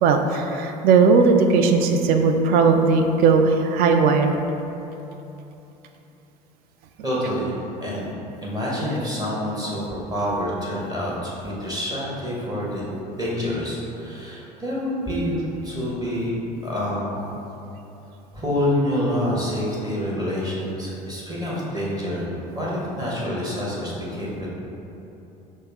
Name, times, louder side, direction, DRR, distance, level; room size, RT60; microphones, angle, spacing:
voice 1, 0.0-4.3, right 4 dB, 45° right, 5 dB, 0.4 m, -17 dB
voice 2, 7.0-7.5 7.8-8.1 8.4-12.9 13.2-17.3 18.3-24.5, equal, 20° right, -6 dB, 1.0 m, -27 dB
5.2 x 2.1 x 3.6 m, 3.0 s
figure-of-eight pair, 70°, 21 cm